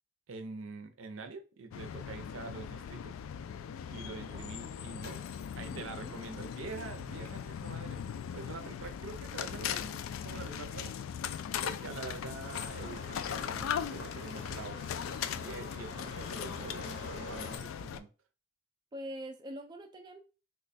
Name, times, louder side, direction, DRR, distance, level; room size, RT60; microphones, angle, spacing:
voice 1, 0.3-3.2 3.9-5.2 5.5-8.0 8.3-10.0 10.2-10.9 11.6-14.8 15.2-18.1, right 4 dB, 85° right, 0.5 m, -45 dB
sound 1, 1.7-18.0, left 8 dB, 90° left, 0.3 m, -39 dB
voice 2, 3.9-4.5 5.7-6.2 8.6-8.8 18.9-20.2, equal, 20° right, 0.3 m, -45 dB
Clapping, 6.8-6.9 7.2-7.5 8.4-8.5 8.8-9.0 9.9-10.0 10.3-10.6, equal, 10° left, 0.6 m, -61 dB
sound 2, 12.4-17.6, left 2 dB, 65° left, 0.7 m, -46 dB
3.1 x 2.2 x 4.0 m
head